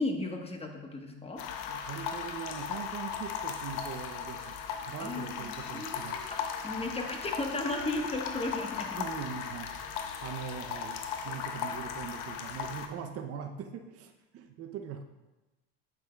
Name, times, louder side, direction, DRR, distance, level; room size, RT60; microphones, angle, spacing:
voice 1, 0.0-1.4 5.0-5.3 5.7-6.4 6.6-9.0, left 2 dB, 20° left, 2 dB, 1.1 m, -34 dB
sound 1, 1.4-12.9, left 7 dB, 80° left, 0.7 m, -37 dB
voice 2, 1.7-4.6 4.9-6.2 8.9-9.7 10.2-15.0, right 7 dB, 50° right, 6 dB, 0.6 m, -41 dB
8.8 x 5.9 x 2.2 m, 1.1 s
supercardioid pair, 85°, 30 cm